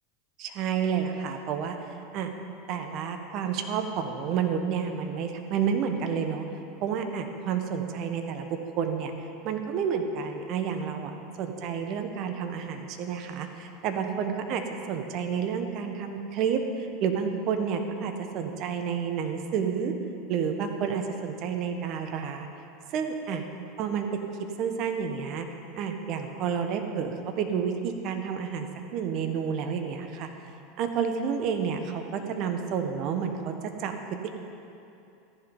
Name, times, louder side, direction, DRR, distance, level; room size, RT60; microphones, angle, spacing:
voice 1, 0.4-1.8 2.1-2.3 2.7-6.5 6.8-9.1 9.4-19.9 20.3-22.5 22.9-23.4 23.8-24.3 24.6-25.5 25.8-30.3 30.8-33.5 33.8-33.9, right 7 dB, 50° right, 6 dB, 1.4 m, -30 dB
14.0 x 11.0 x 5.5 m, 2.7 s
hypercardioid pair, 90°, 0 cm